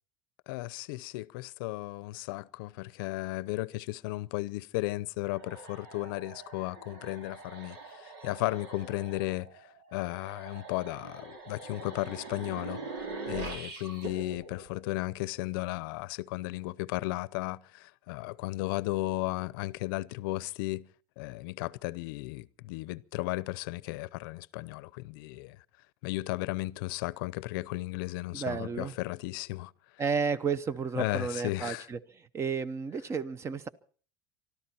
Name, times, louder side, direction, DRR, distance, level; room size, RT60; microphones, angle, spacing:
voice 1, 0.5-12.8 13.2-20.9 21.2-25.6 26.0-29.7 31.0-31.9, left 20 dB, 75° left, 0.7 m, -35 dB
sound 1, 5.3-15.5, right 3 dB, 80° right, 4.2 m, -44 dB
voice 2, 28.3-28.9 30.0-33.7, right 5 dB, 25° right, 0.9 m, -32 dB
24.5 x 13.0 x 4.3 m
supercardioid pair, 135°, 12 cm